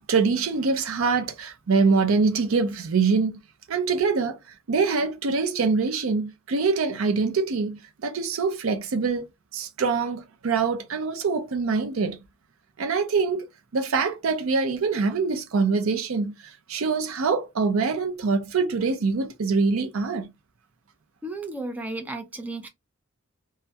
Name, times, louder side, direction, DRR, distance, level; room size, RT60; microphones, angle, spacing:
voice 1, 0.1-3.4 3.7-4.4 4.7-9.3 9.5-12.2 12.8-13.5 13.7-20.3, right 4 dB, 75° right, 0.5 m, -24 dB
voice 2, 21.2-22.7, right 2 dB, 10° right, 0.4 m, -33 dB
2.2 x 2.2 x 2.6 m
head